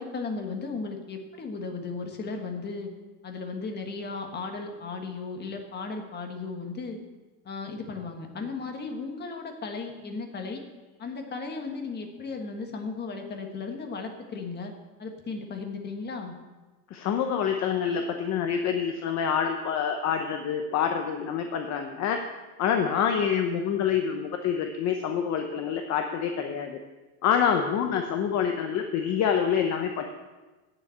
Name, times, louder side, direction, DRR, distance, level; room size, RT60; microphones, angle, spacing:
voice 1, 0.0-2.9 3.2-7.0 7.4-10.6 11.0-14.7 15.0-16.3, left 4 dB, 25° left, 4 dB, 1.4 m, -35 dB
voice 2, 16.9-22.2 22.6-26.8 27.2-30.0, left 7 dB, 40° left, 5 dB, 0.8 m, -26 dB
8.9 x 7.5 x 8.3 m, 1.2 s
cardioid pair, 155°, 41 cm